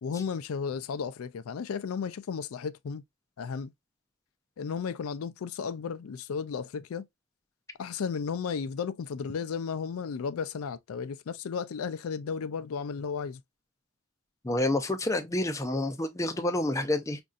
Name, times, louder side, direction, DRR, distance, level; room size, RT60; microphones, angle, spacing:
voice 1, 0.0-3.0 3.4-3.7 4.6-7.1 7.8-13.4, left 6 dB, 80° left, 0.4 m, -34 dB
voice 2, 14.4-17.2, left 1 dB, 15° left, 0.4 m, -28 dB
5.2 x 2.6 x 2.3 m
head